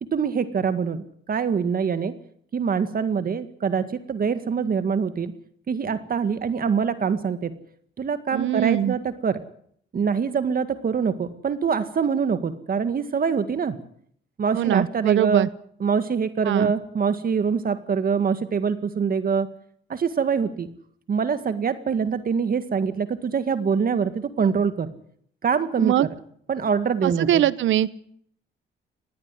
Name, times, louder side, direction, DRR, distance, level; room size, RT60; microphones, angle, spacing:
voice 1, 0.0-2.1 2.5-5.3 5.7-7.5 8.0-9.4 9.9-13.8 14.4-15.5 15.8-19.5 19.9-20.7 21.1-24.9 25.4-26.1 26.5-27.4, right 6 dB, 45° right, 11 dB, 1.9 m, -24 dB
voice 2, 8.3-8.9 14.5-15.5 16.4-16.7 25.8-26.1 27.0-27.9, right 12 dB, 75° right, 18 dB, 1.1 m, -22 dB
20.5 x 16.0 x 9.9 m, 0.65 s
cardioid pair, 90°, 20 cm